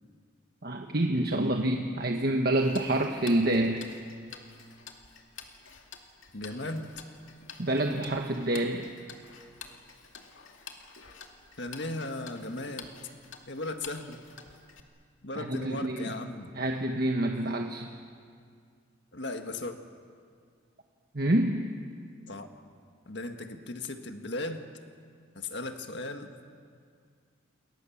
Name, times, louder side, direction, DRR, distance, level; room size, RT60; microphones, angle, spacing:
voice 1, 0.6-3.8 7.6-8.9 15.4-16.1 16.5-17.9 21.1-21.6, right 1 dB, 50° right, 3 dB, 1.3 m, -27 dB
Tick-tock, 2.6-14.8, left 6 dB, 80° left, 2.4 m, -49 dB
voice 2, 6.3-6.9 11.6-12.9 13.5-14.2 15.2-16.5 19.1-19.8 22.3-22.5 23.1-24.7 25.4-26.3, left 2 dB, 60° left, 6 dB, 1.8 m, -36 dB
29.0 x 23.5 x 7.3 m, 2.1 s
head